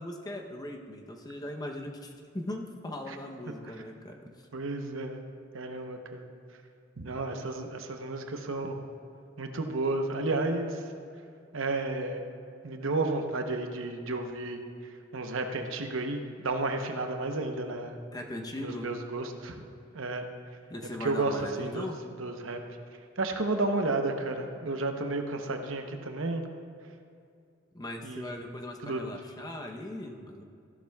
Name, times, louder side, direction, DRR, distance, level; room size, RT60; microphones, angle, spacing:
voice 1, 0.0-4.5 18.1-18.9 20.7-22.0 27.7-30.4, left 1 dB, 20° left, 2 dB, 0.8 m, -39 dB
voice 2, 4.5-5.2 5.5-6.3 7.0-8.8 9.4-10.8 11.5-12.2 12.6-14.6 15.1-18.0 18.6-19.6 19.9-20.3 21.0-21.9 22.2-22.6 23.2-26.4 28.0-28.3 28.8-29.0, right 2 dB, 75° right, 5 dB, 0.9 m, -32 dB
15.0 x 11.5 x 2.3 m, 2.4 s
head